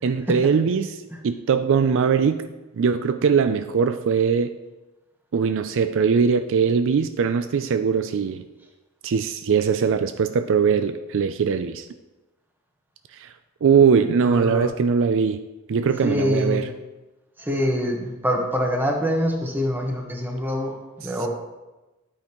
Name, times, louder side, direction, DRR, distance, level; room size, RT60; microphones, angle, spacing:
voice 1, 0.0-2.5 2.8-4.5 5.3-8.4 9.0-11.9 13.1-13.3 13.6-15.4 15.7-16.7, right 6 dB, 60° right, 10 dB, 0.4 m, -21 dB
voice 2, 14.2-14.7 16.0-16.6 17.4-21.3, equal, 10° right, 1 dB, 1.3 m, -25 dB
10.0 x 8.6 x 3.1 m, 1.1 s
head